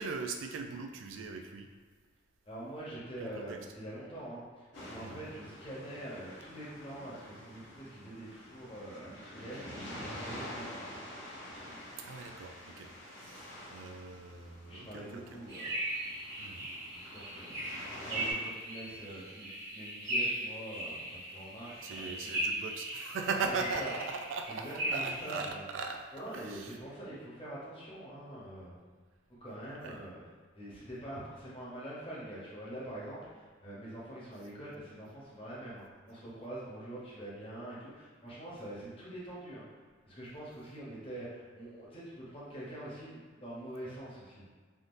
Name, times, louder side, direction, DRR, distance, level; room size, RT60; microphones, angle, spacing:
voice 1, 0.0-1.7 3.2-3.6 5.0-5.2 12.0-12.9 13.2-15.4 16.4-16.7 21.8-26.0 26.3-26.8 29.8-30.0, right 4 dB, 80° right, 5 dB, 0.3 m, -39 dB
voice 2, 2.4-10.8 14.7-16.1 16.9-17.6 18.1-22.4 23.4-23.9 24.5-25.6 26.1-28.8 29.4-30.2 30.5-39.6 40.0-44.4, right 1 dB, 30° left, -8 dB, 0.9 m, -45 dB
sound 1, 4.7-18.3, left 1 dB, 65° left, 1.0 m, -47 dB
sound 2, 15.5-25.5, right 1 dB, 45° right, 1.3 m, -38 dB
3.5 x 2.5 x 2.5 m, 1.6 s
head